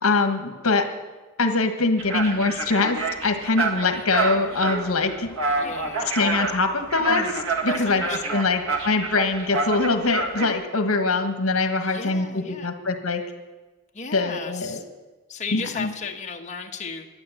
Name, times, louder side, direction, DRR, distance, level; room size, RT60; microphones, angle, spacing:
voice 1, 0.0-0.8 1.4-5.3 6.1-7.3 7.6-8.0 8.3-13.2 14.1-14.8 15.5-15.9, left 3 dB, 70° left, 6 dB, 1.5 m, -23 dB
sound 1, 2.0-10.5, right 3 dB, 65° right, 1.7 m, -28 dB
voice 2, 5.5-6.2 7.0-7.4 7.6-8.5 11.8-12.7 13.9-14.8 15.3-17.1, left 4 dB, 35° left, 2 dB, 1.1 m, -35 dB
11.5 x 10.0 x 7.9 m, 1.2 s
head